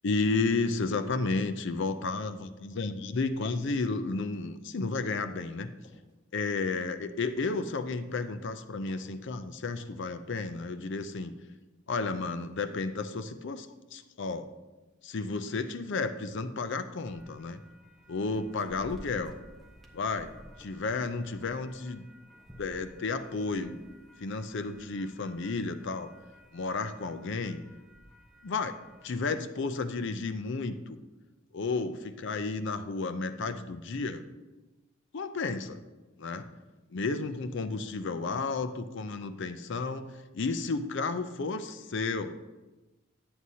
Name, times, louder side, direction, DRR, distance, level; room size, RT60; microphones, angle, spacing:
voice 1, 0.0-5.7 6.3-11.3 11.9-14.5 15.0-17.6 18.1-19.4 19.9-20.3 20.6-22.0 22.6-23.8 24.2-26.1 26.5-27.6 28.4-28.7 29.0-31.0 31.5-34.2 35.1-35.8 36.2-36.5 36.9-42.4, left 3 dB, 60° left, 10 dB, 0.5 m, -32 dB
sound 1, 1.9-2.2 2.7-3.8 4.3-4.6 5.1-5.4 5.8-6.1 6.6-6.9 7.4-7.8 8.1-8.4 8.9-9.2 9.6-10.0 10.3-10.7 11.1-11.5 11.9-12.2 12.6-12.9, left 1 dB, 40° left, 2.5 m, -57 dB
sound 2, 17.0-29.2, equal, ahead, 1.0 m, -54 dB
11.0 x 7.8 x 2.8 m, 1.1 s
head